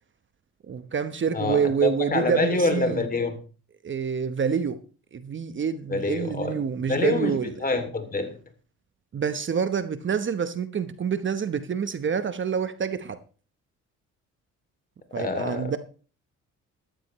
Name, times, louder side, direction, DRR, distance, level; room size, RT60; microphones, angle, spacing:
voice 1, 0.7-3.0 3.8-4.8 5.1-7.5 9.1-13.2 15.1-15.8, right 7 dB, 40° right, 1.0 m, -27 dB
voice 2, 1.3-3.4 5.9-6.6 6.9-8.4 15.2-15.7, left 3 dB, 30° left, 2.6 m, -26 dB
14.0 x 12.5 x 3.1 m
cardioid pair, 90°, 30 cm